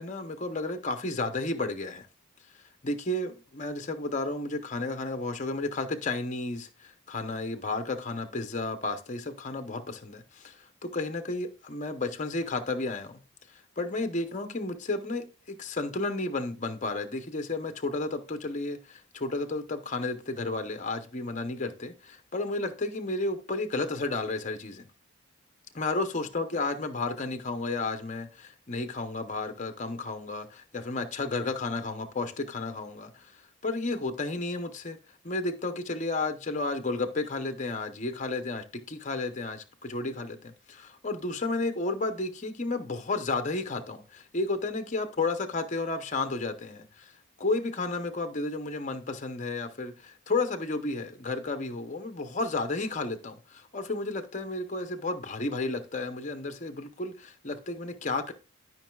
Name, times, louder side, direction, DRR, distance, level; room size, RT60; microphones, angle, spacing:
voice 1, 0.0-2.1 2.8-13.1 13.5-24.9 25.7-35.0 35.2-47.1 47.4-58.3, left 3 dB, 35° left, 0.7 m, -32 dB
12.5 x 5.3 x 2.3 m
head